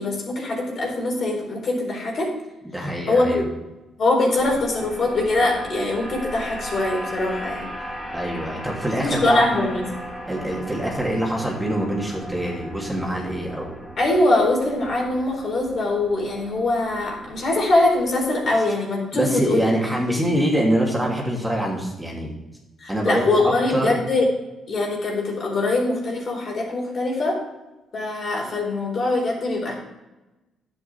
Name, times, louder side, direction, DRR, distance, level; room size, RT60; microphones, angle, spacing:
voice 1, 0.0-2.3 3.1-3.4 4.0-7.7 9.0-9.9 14.0-19.7 22.8-24.2 24.7-27.4 27.9-29.7, left 2 dB, 55° left, -1 dB, 4.3 m, -22 dB
voice 2, 2.7-3.4 8.1-9.5 10.3-13.8 19.1-22.3 22.9-24.0, right 1 dB, 5° right, -3 dB, 2.9 m, -24 dB
sound 1, 4.4-18.5, equal, 15° left, 4.2 m, -37 dB
11.0 x 7.9 x 4.4 m, 1.0 s
cardioid pair, 90°, 0 cm